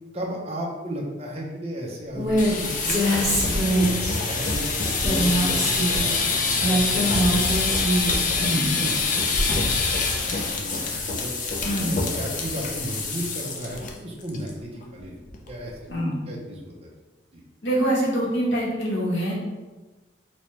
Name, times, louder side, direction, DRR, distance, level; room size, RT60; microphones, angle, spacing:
voice 1, 0.1-3.9 4.2-6.2 6.4-7.7 8.0-11.4 11.8-15.2 15.5-15.8 16.3-16.9 17.3-17.4, right 1 dB, 35° right, -2 dB, 0.6 m, -35 dB
Female speech woman speaking, 2.1-2.5 2.9-4.1 5.0-6.1 6.6-8.2, right 1 dB, ahead, 1.2 m, -23 dB
sound 1, 2.3-13.9 14.2-14.5 14.8-14.9 15.3-15.7, left 3 dB, 45° left, 0.4 m, -25 dB
voice 2, 8.4-8.7 11.6-12.0 15.9-16.2 17.6-19.3, right 1 dB, 70° left, -4 dB, 1.0 m, -24 dB
4.1 x 2.2 x 3.1 m, 1.2 s
head